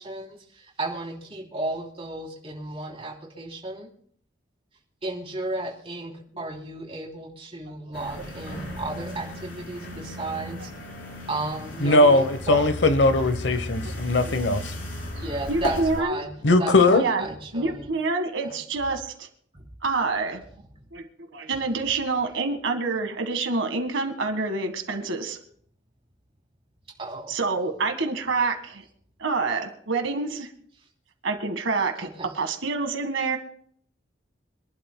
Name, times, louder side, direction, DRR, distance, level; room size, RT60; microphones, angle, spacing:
voice 1, 0.0-3.9 5.0-10.7 11.3-12.6 15.1-16.3 16.6-17.9 18.4-18.5 19.5-19.6 27.0-27.3 32.2-32.3, right 2 dB, 30° right, -1 dB, 3.2 m, -34 dB
sound 1, 7.9-16.0, left 1 dB, 90° left, 4.0 m, -35 dB
voice 2, 11.8-14.7 16.4-17.0, left 2 dB, 65° left, 11 dB, 1.0 m, -19 dB
voice 3, 15.5-16.2 16.9-17.3 17.5-19.3 19.8-20.4 20.9-25.4 27.3-28.8 29.2-30.5 31.2-32.1 32.3-33.4, right 3 dB, 80° right, 6 dB, 1.7 m, -27 dB
26.0 x 11.5 x 2.2 m, 0.62 s
head